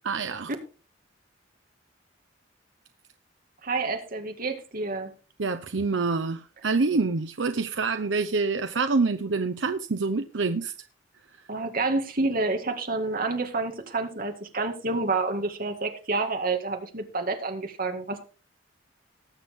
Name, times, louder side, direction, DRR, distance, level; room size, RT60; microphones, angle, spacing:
voice 1, 0.0-0.5 5.4-10.7, right 4 dB, 70° right, 0.7 m, -26 dB
voice 2, 3.6-5.1 11.5-18.2, right 3 dB, 50° right, 2.0 m, -28 dB
19.5 x 7.1 x 3.6 m
head